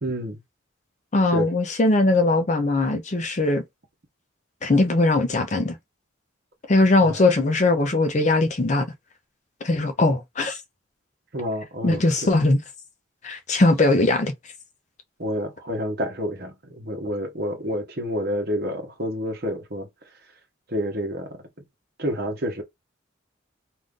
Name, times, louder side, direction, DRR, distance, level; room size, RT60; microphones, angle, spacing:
voice 1, 0.0-0.4 1.3-1.5 7.0-7.2 11.3-12.0 15.2-19.9 20.7-21.4 22.0-22.6, equal, 50° right, 1.0 m, -28 dB
voice 2, 1.1-3.6 4.6-5.8 6.7-8.9 9.6-10.6 11.8-12.6 13.2-14.3, left 2 dB, 35° left, 0.5 m, -20 dB
2.5 x 2.5 x 3.6 m
head